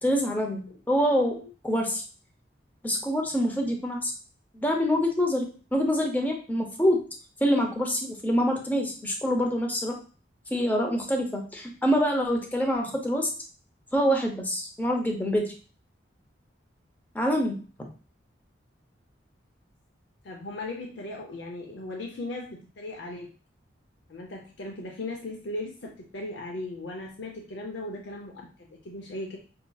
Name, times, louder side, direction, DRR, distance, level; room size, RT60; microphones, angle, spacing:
voice 1, 0.0-2.0 2.8-4.1 4.5-5.4 5.7-7.0 7.4-10.0 10.5-13.3 13.9-15.5 17.1-17.6, equal, 10° left, 2 dB, 0.6 m, -25 dB
voice 2, 20.2-22.5 22.8-23.3 24.1-29.4, left 2 dB, 75° left, 0 dB, 0.6 m, -37 dB
5.4 x 2.8 x 2.3 m, 0.38 s
head